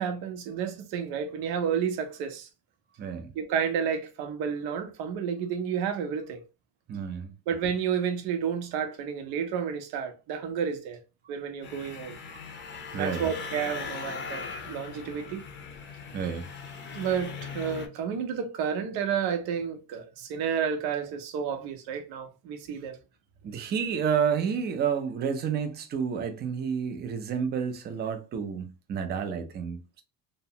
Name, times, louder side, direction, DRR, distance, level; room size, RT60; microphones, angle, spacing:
voice 1, 0.0-2.5 3.3-6.4 7.5-11.0 11.3-12.2 13.0-15.4 16.9-23.0, right 7 dB, 80° right, 0.7 m, -31 dB
voice 2, 3.0-3.3 6.9-7.3 12.3-12.4 12.9-13.3 16.1-16.5 23.4-30.0, right 7 dB, 30° right, 0.4 m, -30 dB
sound 1, 11.6-17.9, left 5 dB, 30° left, 0.5 m, -39 dB
2.8 x 2.1 x 2.7 m
cardioid pair, 150°, 37 cm